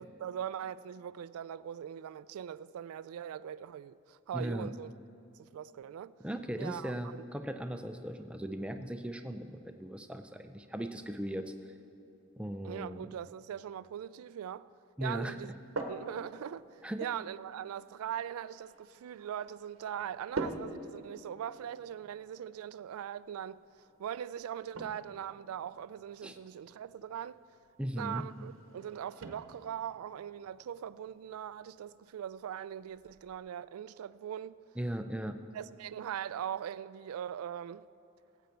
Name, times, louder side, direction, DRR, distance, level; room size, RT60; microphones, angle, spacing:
voice 1, 0.0-4.9 5.4-6.1 6.6-7.3 12.6-14.7 15.0-15.5 15.9-23.6 24.0-27.4 28.0-34.6 35.5-37.9, right 9 dB, 85° right, 0.3 m, -41 dB
voice 2, 4.3-4.7 6.2-11.7 12.4-13.1 15.0-15.4 16.8-17.1 26.2-26.4 27.8-28.3 34.8-35.4, equal, 5° right, 0.4 m, -38 dB
sound 1, 15.3-33.4, right 2 dB, 65° right, 0.9 m, -47 dB
17.0 x 8.2 x 4.4 m
head